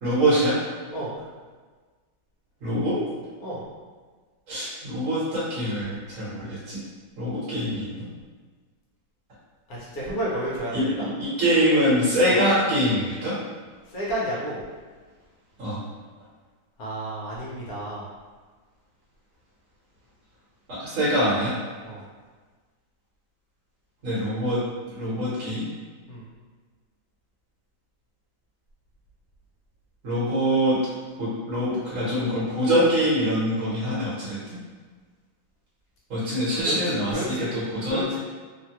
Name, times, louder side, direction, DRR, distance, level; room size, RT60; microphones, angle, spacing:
voice 1, 0.0-0.6 2.6-3.0 4.5-6.8 7.2-8.1 10.7-13.3 15.6-15.8 20.7-21.6 24.0-24.6 24.9-25.6 30.0-30.8 31.2-34.4 36.1-38.2, equal, 50° right, -10 dB, 1.2 m, -24 dB
voice 2, 9.7-11.0 12.3-12.4 13.9-14.6 16.8-18.0 21.8-22.0 26.1-26.3 36.6-36.7 37.1-37.5 37.9-38.2, right 1 dB, 60° left, -6 dB, 1.0 m, -31 dB
3.2 x 2.2 x 2.8 m, 1.4 s
omnidirectional pair, 2.2 m